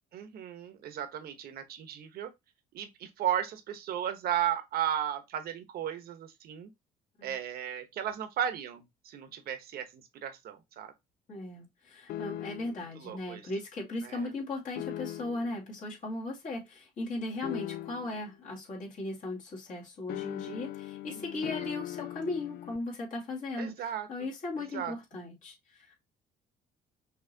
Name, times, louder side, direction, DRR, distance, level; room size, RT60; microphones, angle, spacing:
voice 1, 0.1-2.3 2.7-6.7 7.2-10.9 13.0-13.4 14.0-14.3 21.1-21.5 23.6-24.3 24.6-24.9, right 10 dB, 65° right, 1.1 m, -35 dB
voice 2, 11.3-23.7 24.1-26.0, left 2 dB, 50° left, 2.5 m, -37 dB
sound 1, 12.1-12.9 14.8-15.6 17.4-18.3 20.1-22.8, left 14 dB, 70° left, 0.4 m, -39 dB
6.0 x 3.0 x 2.7 m
cardioid pair, 110°, 17 cm